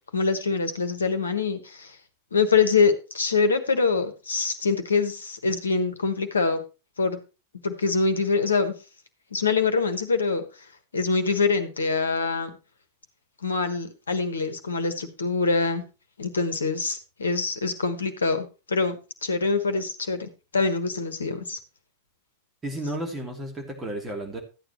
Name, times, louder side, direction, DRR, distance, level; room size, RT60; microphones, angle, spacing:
voice 1, 0.1-1.9 2.3-6.6 7.0-7.2 7.6-8.7 9.3-10.4 10.9-12.5 13.4-15.8 16.2-21.6, left 4 dB, 70° left, 9 dB, 1.3 m, -24 dB
voice 2, 22.6-24.4, right 1 dB, 15° right, 1 dB, 3.0 m, -32 dB
13.0 x 9.0 x 3.1 m, 0.31 s
figure-of-eight pair, 90°, 0 cm